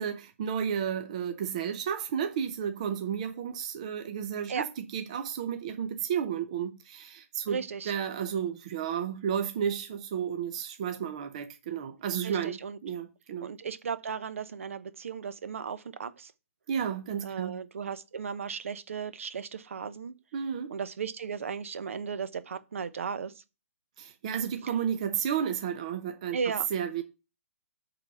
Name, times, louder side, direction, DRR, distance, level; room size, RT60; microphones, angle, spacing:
voice 1, 0.0-7.6 7.9-13.5 16.7-17.6 20.3-20.7 24.0-26.4 26.7-27.0, right 8 dB, 25° right, 0.6 m, -32 dB
voice 2, 7.5-7.9 12.2-12.8 13.4-16.3 17.2-20.1 20.7-23.3 26.3-26.7, right 6 dB, 60° right, 0.8 m, -35 dB
8.1 x 3.9 x 6.8 m
hypercardioid pair, 175°, 8 cm